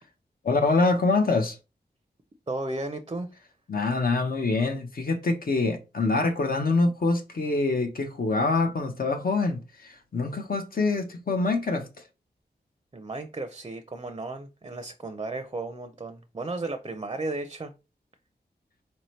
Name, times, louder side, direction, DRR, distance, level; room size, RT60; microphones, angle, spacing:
voice 1, 0.4-1.6 3.7-11.9, left 3 dB, 55° left, 0.7 m, -25 dB
voice 2, 2.5-3.3 12.9-17.7, right 2 dB, 30° right, 0.5 m, -34 dB
4.2 x 2.7 x 3.1 m
wide cardioid pair, 70°, 18 cm